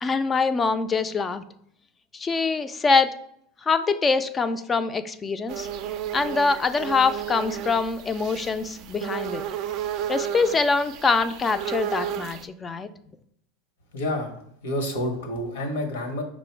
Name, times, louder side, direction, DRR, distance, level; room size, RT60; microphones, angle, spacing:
voice 1, 0.0-1.4 2.1-3.1 3.6-5.7 6.1-9.4 10.1-12.9, left 4 dB, 20° left, 11 dB, 0.3 m, -24 dB
sound 1, 5.5-12.4, right 10 dB, 50° right, 0.3 m, -33 dB
voice 2, 13.9-16.2, left 1 dB, 80° left, 4 dB, 0.9 m, -29 dB
5.3 x 2.1 x 4.4 m, 0.70 s
hypercardioid pair, 105°, 0 cm